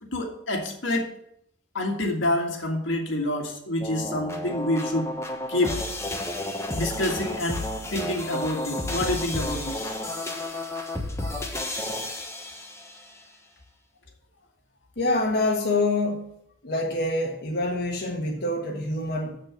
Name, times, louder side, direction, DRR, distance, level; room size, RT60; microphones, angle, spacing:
voice 1, 0.0-1.1 1.7-5.1 5.5-5.8 6.7-7.6 7.9-10.0, left 1 dB, 80° left, 2 dB, 1.8 m, -27 dB
sound 1, 3.8-13.0, left 1 dB, 15° left, 1.2 m, -32 dB
voice 2, 15.0-16.3 16.6-19.4, left 2 dB, 60° left, -1 dB, 1.4 m, -26 dB
7.1 x 6.7 x 7.1 m, 0.74 s
head